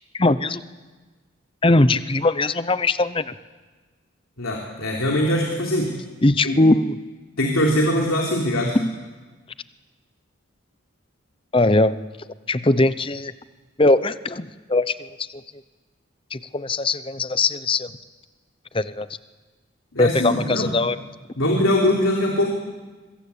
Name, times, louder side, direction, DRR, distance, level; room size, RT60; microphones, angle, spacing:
voice 1, 0.1-0.6 1.6-3.3 6.2-7.0 8.7-8.9 11.5-12.0 12.5-13.3 13.8-15.4 16.3-17.9 18.7-19.1 20.0-21.0, left 2 dB, 25° left, 14 dB, 0.7 m, -20 dB
voice 2, 4.4-5.9 6.4-6.5 7.4-8.7 19.9-20.7 21.4-22.5, left 1 dB, 85° left, 0 dB, 3.4 m, -21 dB
25.0 x 22.5 x 8.5 m, 1.3 s
head